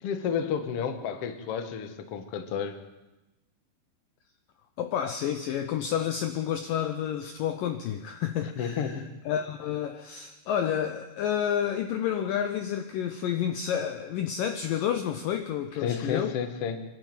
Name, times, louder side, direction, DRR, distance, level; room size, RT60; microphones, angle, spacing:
voice 1, 0.0-2.8 8.4-9.0 15.7-16.8, left 7 dB, 70° left, 8 dB, 1.4 m, -31 dB
voice 2, 4.8-16.3, left 9 dB, 90° left, 8 dB, 1.9 m, -30 dB
25.5 x 11.5 x 9.2 m, 1.0 s
omnidirectional pair, 5.1 m